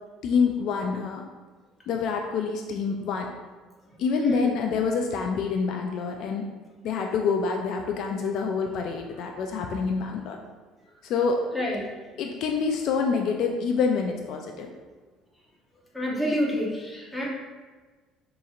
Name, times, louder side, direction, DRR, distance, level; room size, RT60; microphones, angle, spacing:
voice 1, 0.2-1.2 1.9-3.3 4.0-6.4 6.8-10.4 11.0-11.4 12.2-14.7, left 5 dB, 55° left, 3 dB, 0.3 m, -27 dB
voice 2, 4.2-4.5 11.5-11.9 15.9-17.3, equal, 5° left, -4 dB, 0.8 m, -28 dB
5.1 x 2.9 x 2.4 m, 1.3 s
cardioid pair, 150°, 0 cm